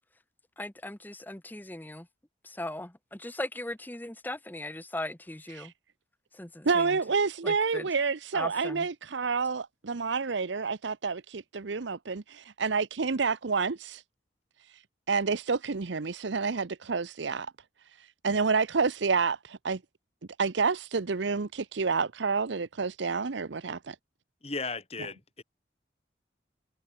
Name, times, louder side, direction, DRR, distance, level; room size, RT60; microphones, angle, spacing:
voice 1, 0.6-2.1 2.4-5.7 6.3-7.0 7.4-7.9 8.3-8.9, left 1 dB, 10° left, 0.8 m, -38 dB
voice 2, 6.6-14.0 14.7-14.8 15.1-17.5 18.0-19.8 20.4-24.0, right 4 dB, 75° right, 0.7 m, -29 dB
voice 3, 24.4-25.4, left 4 dB, 30° left, 3.4 m, -36 dB
head